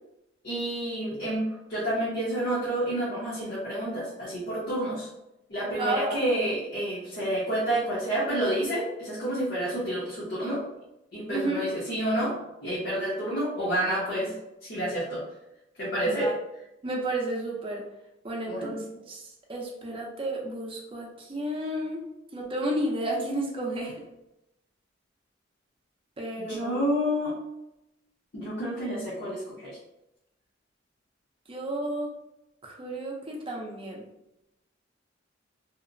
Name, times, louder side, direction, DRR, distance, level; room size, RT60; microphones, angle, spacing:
voice 1, 0.4-5.1 5.5-10.6 11.1-15.2 15.8-16.3 18.5-18.8 26.4-27.4 28.3-29.8, right 1 dB, 55° left, -8 dB, 0.7 m, -29 dB
voice 2, 5.8-6.2 11.3-11.7 16.1-16.3 16.8-17.8 18.2-22.0 22.3-24.1 26.2-26.8 31.5-32.1 32.6-34.0, right 1 dB, 30° right, 0 dB, 0.5 m, -32 dB
2.8 x 2.0 x 2.5 m, 0.89 s
head